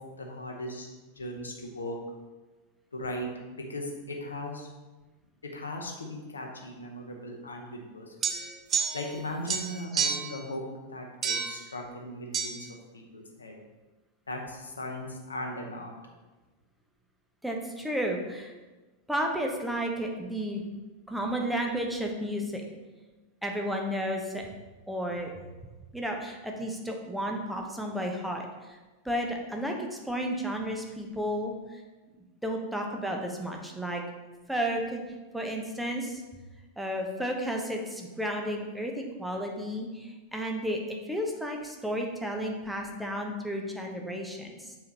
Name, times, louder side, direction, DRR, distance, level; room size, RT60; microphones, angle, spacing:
voice 1, 0.2-0.9 1.2-2.0 2.9-4.7 5.4-8.1 8.9-10.6 10.9-12.6 12.9-13.5 14.3-15.9, left 1 dB, 75° left, 2 dB, 0.9 m, -38 dB
sound 1, 8.2-9.2 9.5-10.4 11.2-11.6 12.3-12.5, right 6 dB, 25° right, 0.5 m, -29 dB
voice 2, 17.4-18.5 19.1-20.6 21.1-22.6 23.4-24.4 24.9-25.3 25.9-28.8 29.0-31.8 32.4-34.0 34.5-35.0 35.3-36.2 36.8-44.8, equal, ahead, 1 dB, 0.8 m, -32 dB
7.4 x 4.5 x 2.8 m, 1.2 s
figure-of-eight pair, 90°, 0 cm